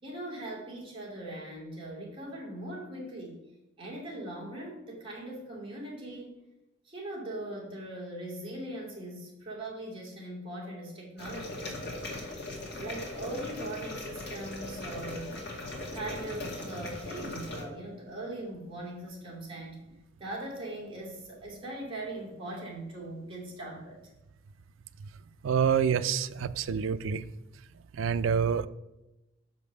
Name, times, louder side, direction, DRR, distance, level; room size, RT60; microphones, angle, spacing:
voice 1, 0.0-3.4 3.8-6.4 6.8-12.2 12.8-15.3 15.9-19.8 20.2-24.0, right 1 dB, 25° right, -3 dB, 2.7 m, -40 dB
sound 1, 11.2-17.6, left 2 dB, 60° left, 2.0 m, -39 dB
voice 2, 25.4-27.2 28.0-28.7, right 7 dB, 80° right, 13 dB, 0.4 m, -27 dB
6.1 x 5.3 x 6.7 m, 0.94 s
head